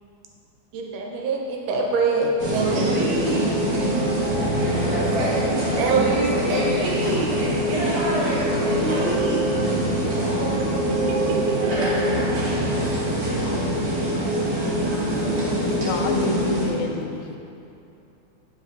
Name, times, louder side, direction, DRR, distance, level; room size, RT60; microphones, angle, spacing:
voice 1, 0.7-3.0 5.8-6.1 10.9-11.6, right 4 dB, 85° right, 0 dB, 2.4 m, -24 dB
sound 1, 2.4-16.7, right 1 dB, 50° right, 1.8 m, -24 dB
voice 2, 2.6-3.7 4.8-10.1 10.5-10.6, right 1 dB, 65° right, -6 dB, 2.5 m, -28 dB
voice 3, 15.8-17.4, left 4 dB, 80° left, 3 dB, 1.7 m, -28 dB
9.2 x 6.9 x 2.6 m, 2.7 s
omnidirectional pair, 3.6 m